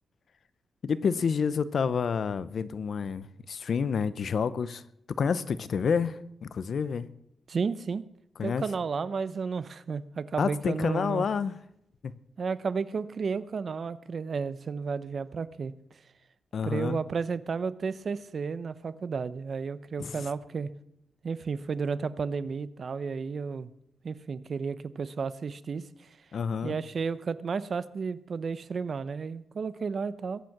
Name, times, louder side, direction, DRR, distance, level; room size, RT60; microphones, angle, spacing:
voice 1, 0.8-4.8 5.2-7.1 8.4-8.6 10.4-11.5 12.0-12.1 16.5-17.0 20.0-20.3 26.3-26.8, left 6 dB, 55° left, 0.7 m, -29 dB
voice 2, 7.5-8.1 8.4-11.3 12.4-15.7 16.6-20.7 21.2-23.7 24.0-26.1 26.6-30.4, right 5 dB, 45° right, 0.7 m, -32 dB
21.5 x 9.2 x 6.0 m
wide cardioid pair, 150°, 0 cm